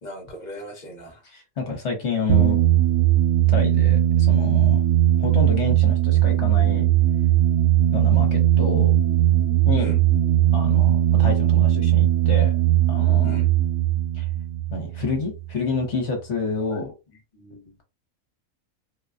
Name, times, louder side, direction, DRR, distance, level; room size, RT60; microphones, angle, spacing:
voice 1, 0.0-1.2 9.8-10.0 13.2-13.5 16.7-16.8 17.3-17.6, equal, 35° left, 2 dB, 1.0 m, -39 dB
voice 2, 1.2-2.6 3.5-4.8 5.2-6.8 7.9-8.9 9.7-10.0 10.5-12.5 12.9-13.4 14.1-14.3 14.7-16.9, left 3 dB, 55° left, 3 dB, 1.2 m, -28 dB
sound 1, 2.3-15.5, right 12 dB, 90° right, 1.1 m, -19 dB
3.8 x 2.2 x 2.5 m, 0.27 s
omnidirectional pair, 1.5 m